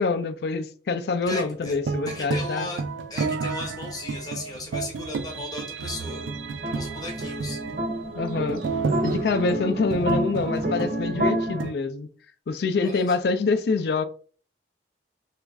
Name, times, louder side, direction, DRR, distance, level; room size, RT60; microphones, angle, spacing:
voice 1, 0.0-2.7 8.1-8.6 9.0-12.1 12.5-14.0, left 4 dB, 55° left, 0.3 m, -25 dB
voice 2, 1.3-1.7 2.1-2.8 3.1-6.2 6.7-7.6 12.8-13.1, left 2 dB, 20° left, 0.8 m, -36 dB
sound 1, 1.3-11.7, right 4 dB, 85° right, 0.3 m, -32 dB
sound 2, 5.9-11.6, right 1 dB, 45° right, 0.6 m, -29 dB
3.0 x 2.4 x 3.4 m
head